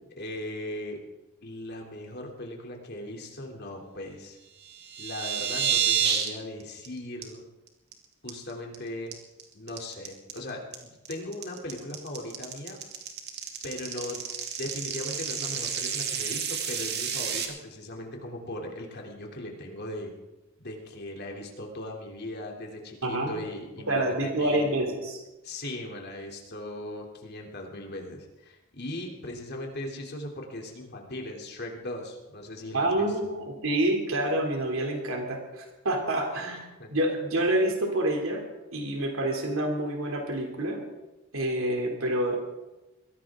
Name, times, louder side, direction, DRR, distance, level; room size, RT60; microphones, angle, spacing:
voice 1, 0.2-1.0 1.4-4.4 5.0-7.4 8.2-9.2 9.5-12.8 13.6-14.2 14.6-20.1 20.6-24.7 25.4-33.3 36.8-36.9, left 1 dB, 50° left, 0 dB, 3.1 m, -38 dB
sound 1, 4.6-6.3 6.6-6.9 7.2-7.3 7.7-7.9 8.3-8.7 9.1-17.4, right 8 dB, 55° right, 2.5 m, -30 dB
voice 2, 23.0-23.3 23.9-25.2 32.7-38.5 38.7-40.8 41.3-42.4, right 1 dB, 85° right, 2 dB, 2.9 m, -27 dB
22.0 x 17.0 x 3.7 m, 1.1 s
head